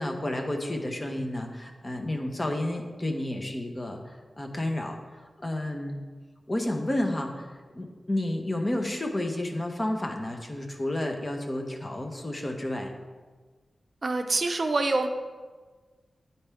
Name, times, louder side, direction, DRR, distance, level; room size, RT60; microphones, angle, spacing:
voice 1, 0.0-6.0 6.5-12.9, left 1 dB, 30° left, 3 dB, 0.9 m, -31 dB
voice 2, 14.0-15.1, right 2 dB, 50° right, 5 dB, 0.5 m, -25 dB
9.8 x 4.3 x 3.5 m, 1.4 s
wide cardioid pair, 65°, 0 cm